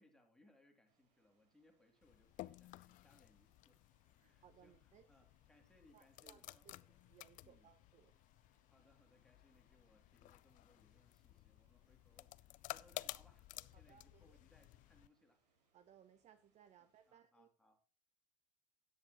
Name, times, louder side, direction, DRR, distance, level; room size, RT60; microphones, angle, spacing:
voice 1, 0.0-3.8 4.2-7.0 7.4-7.7 8.6-15.4 16.8-17.8, left 2 dB, 5° left, 2 dB, 2.7 m, -71 dB
sound 1, 0.8-17.1, right 4 dB, 85° right, 5.3 m, -84 dB
sound 2, 2.0-15.1, left 17 dB, 40° left, 0.5 m, -55 dB
voice 2, 4.2-5.1 5.9-6.6 7.1-8.1 13.9-14.4 15.7-17.5, right 9 dB, 35° right, 11 dB, 0.9 m, -66 dB
13.5 x 9.6 x 3.0 m, 0.37 s
supercardioid pair, 115°, 21 cm